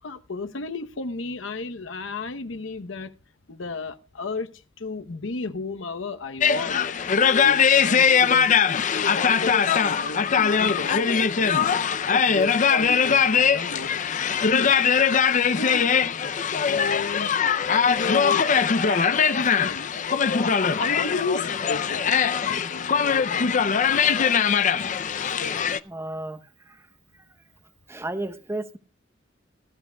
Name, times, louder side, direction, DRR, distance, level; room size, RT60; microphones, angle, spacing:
voice 1, 0.0-3.2 3.5-7.0 7.4-11.5 12.1-14.0 14.4-14.9 15.6-16.0 16.6-17.3 17.9-19.9 20.7-24.2, left 3 dB, 80° left, 0.9 m, -34 dB
sound 1, 6.4-25.8, left 6 dB, 40° left, 0.5 m, -21 dB
voice 2, 25.9-26.4 27.9-28.8, right 2 dB, 15° right, 0.9 m, -33 dB
18.5 x 13.0 x 2.3 m
head